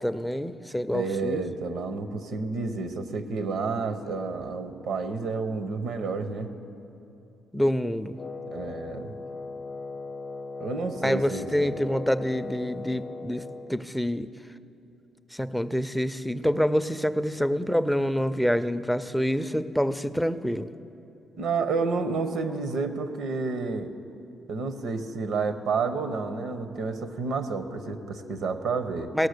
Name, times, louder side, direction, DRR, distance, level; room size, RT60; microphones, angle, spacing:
voice 1, 0.0-1.4 7.5-8.2 11.0-14.3 15.3-20.7 29.1-29.3, equal, ahead, 12 dB, 0.4 m, -26 dB
voice 2, 0.9-6.5 8.5-9.2 10.6-11.7 21.4-23.9 24.5-29.1, right 4 dB, 70° right, 9 dB, 0.8 m, -30 dB
Wind instrument woodwind instrument, 8.1-13.8, left 3 dB, 45° left, 0.7 m, -38 dB
17.5 x 6.3 x 6.6 m, 2.8 s
cardioid pair, 90°, 0 cm